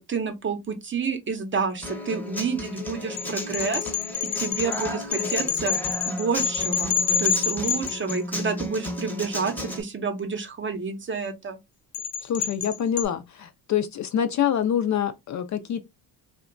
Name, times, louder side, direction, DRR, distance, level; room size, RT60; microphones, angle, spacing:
voice 1, 0.0-3.9 4.3-5.8 6.0-11.6, right 5 dB, 30° right, 0.7 m, -29 dB
Human voice / Acoustic guitar, 1.8-9.8, left 1 dB, 5° left, 0.7 m, -34 dB
sound 1, 3.2-8.6 11.9-13.1, left 8 dB, 65° left, 0.8 m, -27 dB
voice 2, 12.2-15.8, left 9 dB, 45° left, 0.4 m, -26 dB
2.8 x 2.2 x 2.5 m
cardioid pair, 85°, 42 cm